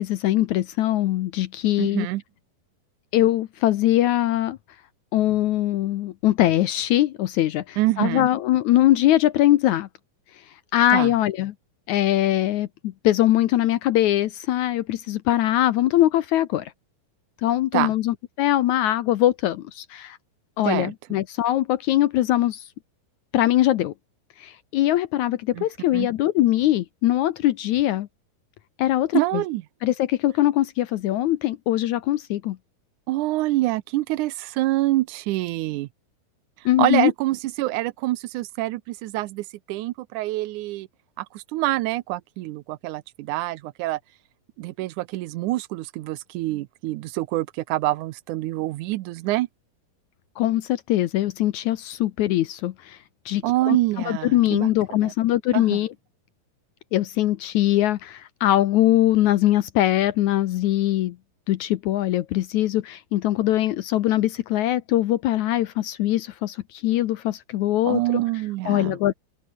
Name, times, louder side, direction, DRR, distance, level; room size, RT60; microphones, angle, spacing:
voice 1, 0.0-2.1 3.1-4.6 5.1-9.9 10.7-11.5 11.9-16.7 17.4-20.2 20.6-22.7 23.3-23.9 24.4-28.1 28.8-29.4 29.8-32.6 36.6-37.1 50.4-53.0 53.2-53.8 54.1-55.9 56.9-61.2 61.5-68.0 68.6-69.1, left 14 dB, 75° left, 1.8 m, -22 dB
voice 2, 1.8-2.2 7.8-8.3 10.9-11.1 17.7-17.9 20.6-20.9 25.5-25.6 25.9-26.1 29.1-29.6 33.1-35.9 36.8-40.9 41.2-44.0 44.6-49.5 53.4-54.7 55.0-55.1 55.5-55.8 67.8-69.0, right 17 dB, 80° right, 1.8 m, -26 dB
open air
omnidirectional pair, 4.2 m